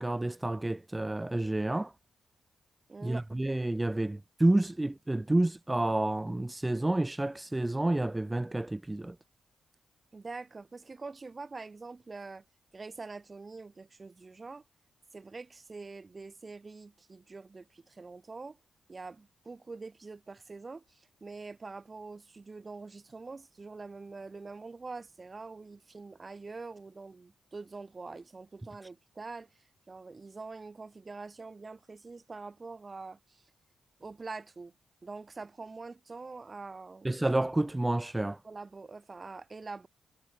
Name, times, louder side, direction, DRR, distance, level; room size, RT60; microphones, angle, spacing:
voice 1, 0.0-1.9 3.0-9.1 37.0-38.4, right 1 dB, 20° right, 0.6 m, -29 dB
voice 2, 2.9-3.3 10.1-12.4 12.7-14.6 15.1-18.6 18.9-33.4 34.0-34.7 35.0-37.1 38.4-39.9, right 3 dB, 40° right, 2.1 m, -45 dB
hypercardioid pair, 45°, 0 cm